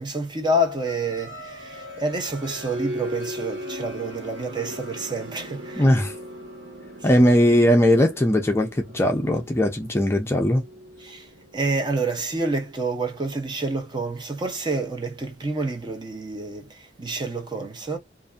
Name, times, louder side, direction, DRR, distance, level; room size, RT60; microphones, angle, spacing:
voice 1, 0.0-5.9 7.0-7.3 11.0-18.0, right 2 dB, 25° right, 0.7 m, -28 dB
sound 1, 0.9-13.4, equal, 75° right, 1.2 m, -39 dB
voice 2, 5.8-6.1 7.0-10.6, equal, 15° left, 0.5 m, -19 dB
2.6 x 2.5 x 2.2 m
head